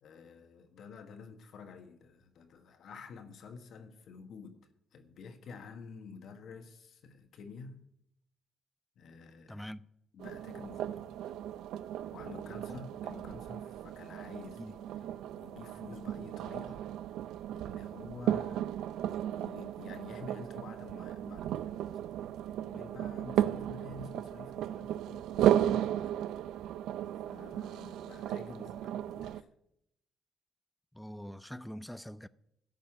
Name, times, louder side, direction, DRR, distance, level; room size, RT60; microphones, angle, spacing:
voice 1, 0.0-4.6 4.9-7.9 9.0-9.7 10.1-11.2 12.1-15.0 15.4-16.8 17.5-18.7 19.1-21.8 22.7-26.3 27.3-29.5, left 5 dB, 70° left, 1.4 m, -49 dB
voice 2, 9.5-9.9 12.7-12.8 14.6-14.7 30.9-32.3, equal, 5° left, 0.5 m, -44 dB
sound 1, 10.2-29.4, right 11 dB, 85° right, 0.4 m, -35 dB
12.5 x 5.5 x 8.8 m
cardioid pair, 90°, 0 cm